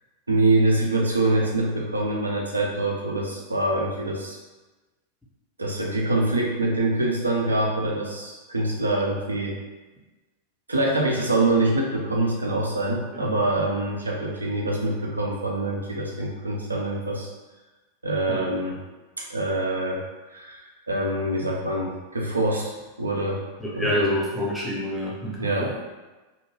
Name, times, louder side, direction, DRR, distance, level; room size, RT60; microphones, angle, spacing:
voice 1, 0.3-4.4 5.6-9.6 10.7-17.3 18.0-18.8 19.2-20.0 20.3-23.4 23.8-24.1 25.4-25.7, right 2 dB, 80° right, -2 dB, 0.5 m, -25 dB
voice 2, 23.6-25.7, left 1 dB, 5° left, -5 dB, 0.6 m, -28 dB
2.7 x 2.1 x 3.1 m, 1.2 s
figure-of-eight pair, 90°, 0 cm